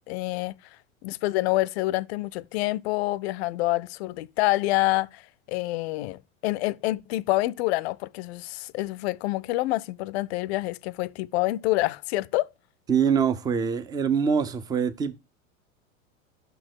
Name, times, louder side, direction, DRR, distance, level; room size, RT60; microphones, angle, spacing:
voice 1, 0.1-0.6 1.0-12.5, left 18 dB, 55° left, 0.4 m, -27 dB
voice 2, 12.9-15.1, right 7 dB, 10° right, 0.3 m, -24 dB
5.8 x 4.5 x 6.0 m
hypercardioid pair, 95°, 40 cm